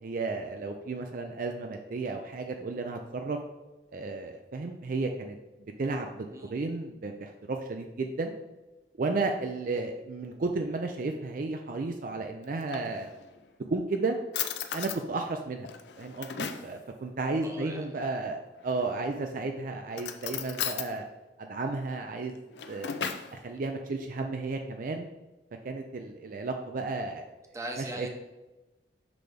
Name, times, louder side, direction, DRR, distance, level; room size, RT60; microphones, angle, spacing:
voice 1, 0.0-3.4 3.9-5.4 5.8-8.3 9.0-13.1 13.7-14.2 14.7-15.7 16.0-21.0 21.4-22.4 22.7-23.0 23.3-25.1 25.6-27.2 28.0-28.1, right 3 dB, 50° right, 4 dB, 0.4 m, -33 dB
voice 2, 6.3-6.6 17.4-18.0 27.5-28.1, right 1 dB, 15° right, 2 dB, 0.8 m, -40 dB
Drawer open or close, 12.4-13.4 13.9-14.0 14.3-15.0 15.6-16.7 18.6-19.2 19.9-20.9 22.3-23.4, left 8 dB, 75° left, 0.5 m, -36 dB
6.0 x 3.4 x 5.0 m, 1.1 s
head